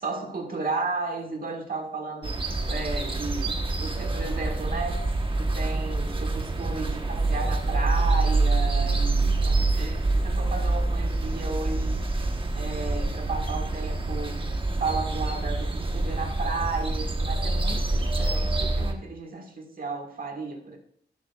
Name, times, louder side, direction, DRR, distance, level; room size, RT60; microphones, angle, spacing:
voice 1, 0.0-5.1 5.4-12.1 12.6-20.8, right 3 dB, 50° right, 1.7 m, -34 dB
sound 1, 2.2-18.9, right 2 dB, 30° right, 1.2 m, -26 dB
11.5 x 11.0 x 2.4 m
wide cardioid pair, 110°, 18 cm